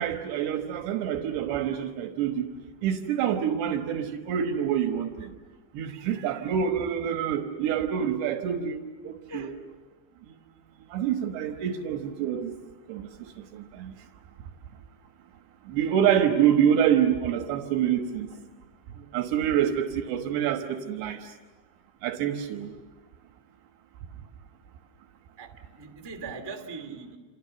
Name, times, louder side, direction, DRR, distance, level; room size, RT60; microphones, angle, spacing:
voice 1, 0.0-2.5 2.8-5.3 5.7-9.5 10.9-12.5 12.9-13.9 15.7-18.3 19.0-21.3 22.0-22.7, right 9 dB, 75° right, 3.4 m, -27 dB
voice 2, 5.9-6.5 9.3-9.6 25.4-27.2, right 4 dB, 25° right, 0.5 m, -41 dB
29.0 x 29.0 x 7.0 m
omnidirectional pair, 5.2 m